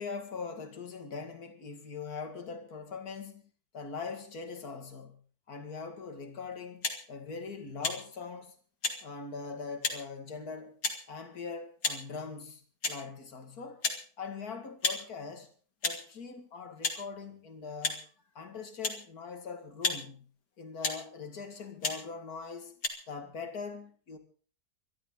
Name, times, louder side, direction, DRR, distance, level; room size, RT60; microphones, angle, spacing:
voice 1, 0.0-3.4 3.7-5.2 5.5-8.6 9.0-10.8 11.1-12.6 12.9-13.8 14.2-15.5 15.8-18.0 18.3-20.3 20.6-22.8 23.1-24.2, left 5 dB, 65° left, 2.6 m, -41 dB
sound 1, 6.8-7.0 7.8-8.0 8.8-9.0 9.8-10.0 10.8-11.0 11.8-12.0 12.8-13.0 13.8-14.0 14.8-15.0 15.8-16.0 16.8-17.0 17.8-18.0 18.8-19.0 19.8-20.0 20.8-21.0 21.8-22.0 22.8-22.9, left 3 dB, 85° left, 3.1 m, -31 dB
24.0 x 12.5 x 3.9 m
omnidirectional pair, 1.7 m